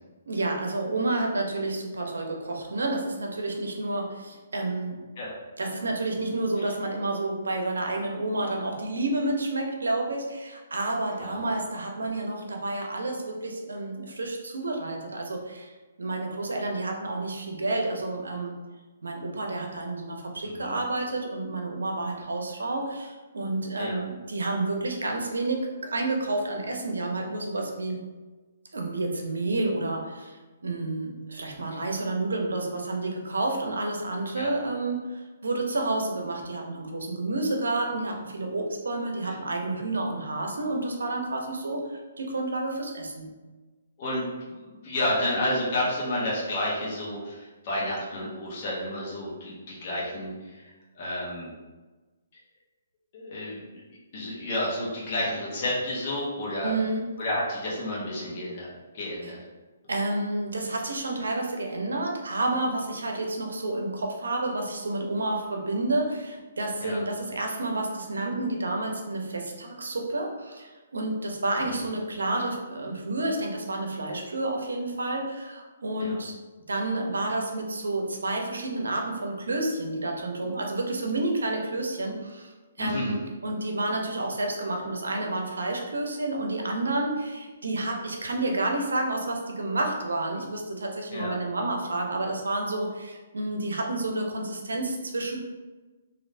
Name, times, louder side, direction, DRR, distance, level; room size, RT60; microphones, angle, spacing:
voice 1, 0.3-5.0 5.6-15.7 16.0-18.5 19.0-28.0 28.7-43.3 56.6-57.0 59.9-76.3 76.7-82.5 82.8-95.4, right 2 dB, 90° right, 2 dB, 0.6 m, -30 dB
voice 2, 20.4-20.8 23.8-24.0 34.4-34.5 39.2-39.3 44.0-51.5 53.1-53.8 54.1-56.7 57.2-59.4 66.8-67.0 71.7-71.8 76.0-76.2 82.8-83.1 91.1-91.3, left 1 dB, 45° left, -5 dB, 0.9 m, -31 dB
3.2 x 2.6 x 2.6 m, 1.2 s
hypercardioid pair, 145°, 0 cm